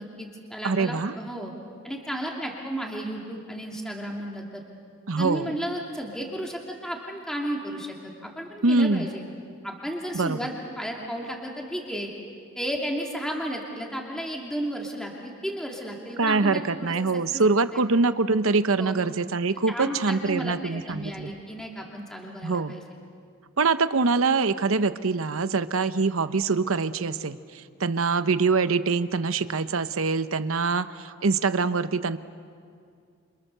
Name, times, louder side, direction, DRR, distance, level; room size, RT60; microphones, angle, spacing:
voice 1, 0.0-1.5 1.8-4.6 5.2-9.2 9.6-12.1 12.6-17.4 17.7-17.8 18.8-18.9 19.7-22.8, equal, 5° left, -1 dB, 2.6 m, -33 dB
voice 2, 0.6-1.1 5.1-5.5 8.6-9.1 10.1-10.4 16.2-21.3 22.4-22.8 23.6-32.2, right 4 dB, 80° right, 12 dB, 0.9 m, -24 dB
29.0 x 27.0 x 6.8 m, 2.3 s
head